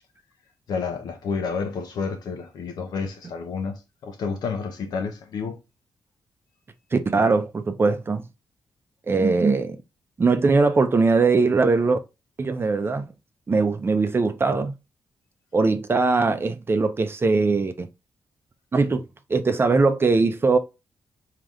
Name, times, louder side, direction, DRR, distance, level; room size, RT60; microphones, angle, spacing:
voice 1, 0.7-5.6, left 5 dB, 80° left, 0.8 m, -30 dB
voice 2, 6.9-8.2 9.1-9.8 10.2-12.0 12.4-13.1 13.5-14.7 15.5-17.9 18.7-20.6, right 4 dB, 35° right, 0.6 m, -21 dB
3.4 x 2.9 x 2.4 m
cardioid pair, 70°, 7 cm